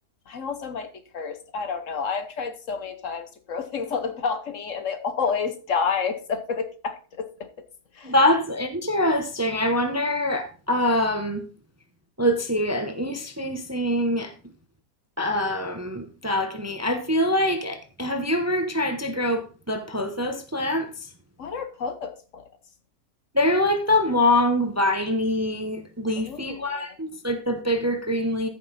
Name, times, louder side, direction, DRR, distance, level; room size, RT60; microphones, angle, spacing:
voice 1, 0.3-7.5 7.9-8.1 21.4-22.4 26.2-27.0, left 5 dB, 60° left, 1.2 m, -30 dB
voice 2, 8.0-11.4 12.2-14.3 15.2-20.9 23.3-28.5, left 1 dB, 15° right, 0.8 m, -24 dB
14.0 x 5.8 x 4.1 m
omnidirectional pair, 1.6 m